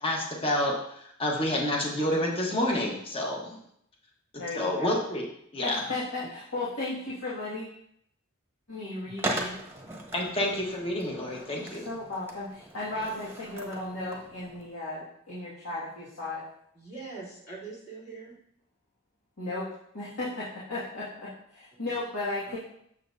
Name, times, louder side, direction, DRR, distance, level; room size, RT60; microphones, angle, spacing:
voice 1, 0.0-3.6 4.5-5.2 5.5-5.8 10.1-11.9, left 1 dB, 25° left, -1 dB, 1.1 m, -29 dB
voice 2, 4.4-5.0 5.6-7.7 8.7-9.6 11.6-16.4 19.4-19.7 19.9-22.6, left 2 dB, 75° left, -10 dB, 1.9 m, -35 dB
Skateboard, 9.2-14.7, right 1 dB, 10° right, 1.0 m, -38 dB
voice 3, 16.7-18.4 21.9-22.0 22.4-22.6, right 4 dB, 50° left, -6 dB, 2.9 m, -43 dB
7.4 x 7.1 x 2.6 m, 0.71 s
head